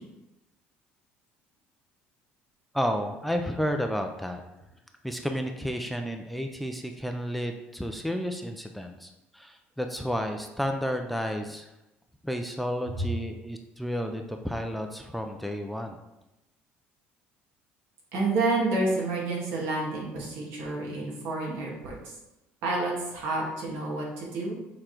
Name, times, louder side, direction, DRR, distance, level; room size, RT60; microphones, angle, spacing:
voice 1, 2.7-4.4 5.0-11.7 12.2-16.0, equal, ahead, 5 dB, 0.5 m, -31 dB
voice 2, 18.1-22.1 22.6-24.6, right 2 dB, 75° right, -3 dB, 2.2 m, -29 dB
6.6 x 3.7 x 4.5 m, 0.94 s
cardioid pair, 135°, 4 cm